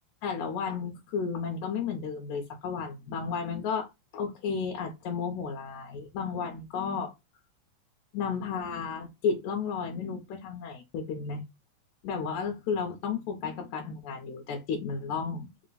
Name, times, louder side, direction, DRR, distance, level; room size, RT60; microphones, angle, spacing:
voice 1, 0.2-7.1 8.1-11.4 12.0-15.5, left 6 dB, 75° left, 2.1 m, -33 dB
4.9 x 2.2 x 3.9 m
omnidirectional pair, 3.5 m